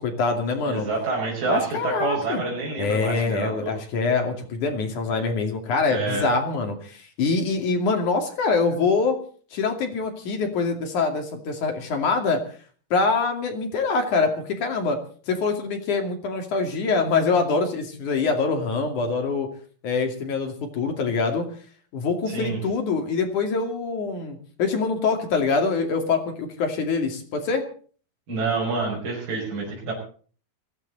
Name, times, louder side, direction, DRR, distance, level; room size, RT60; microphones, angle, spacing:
voice 1, 0.0-0.9 1.4-2.4 2.8-9.2 9.5-12.4 12.9-15.0 15.3-19.5 19.8-21.5 21.9-27.6, left 4 dB, 55° left, 4 dB, 3.7 m, -24 dB
voice 2, 0.6-3.7 5.9-6.2 22.3-22.6 28.3-29.9, right 3 dB, 55° right, -4 dB, 7.4 m, -27 dB
21.0 x 15.5 x 4.1 m, 0.43 s
omnidirectional pair, 4.6 m